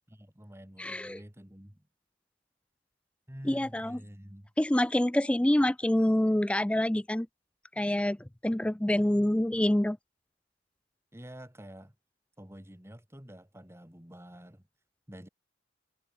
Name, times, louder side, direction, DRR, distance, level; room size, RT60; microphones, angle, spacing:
voice 1, 0.1-1.9 3.3-4.5 11.1-11.9 12.4-14.6 15.1-15.3, equal, 15° right, 2.8 m, -48 dB
voice 2, 0.8-1.2 3.5-4.0 4.6-7.3 7.8-8.2 8.4-10.0, left 1 dB, 5° left, 0.3 m, -26 dB
head